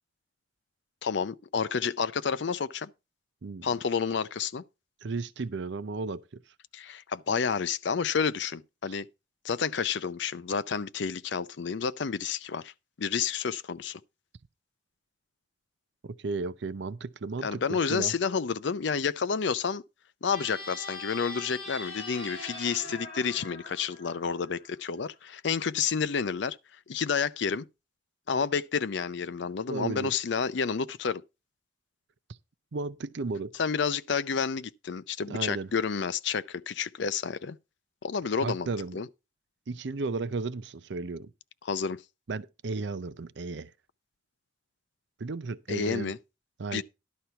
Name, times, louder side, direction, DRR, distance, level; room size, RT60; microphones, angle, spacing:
voice 1, 1.0-2.9 3.6-4.6 6.7-9.1 9.4-12.7 13.0-14.0 17.4-19.8 20.2-26.6 26.9-27.7 28.3-31.2 33.6-37.6 38.0-39.1 41.6-42.0 45.7-46.2 46.7-46.8, left 6 dB, 60° left, 0.5 m, -30 dB
voice 2, 5.0-6.4 8.9-9.0 16.0-18.1 29.7-30.1 32.7-33.5 35.3-35.7 38.4-39.0 39.7-41.3 42.3-43.7 45.2-46.1 46.6-46.8, right 3 dB, 60° right, 0.5 m, -34 dB
sound 1, 20.3-24.7, left 2 dB, 30° left, 4.1 m, -42 dB
11.5 x 4.4 x 6.8 m
head